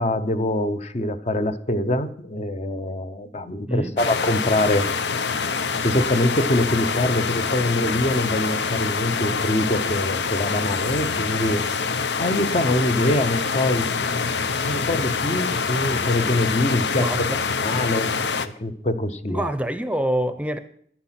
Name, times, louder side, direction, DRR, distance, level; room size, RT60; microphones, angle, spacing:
voice 1, 0.0-4.9 5.8-11.6 12.2-14.4 14.7-17.2 17.6-18.1 18.4-19.5, left 1 dB, 40° left, 0.8 m, -24 dB
voice 2, 3.7-4.0 16.9-17.4 19.3-20.6, right 1 dB, 5° right, 0.7 m, -26 dB
sound 1, 4.0-18.5, left 5 dB, 80° left, 0.8 m, -25 dB
10.5 x 10.5 x 5.8 m
head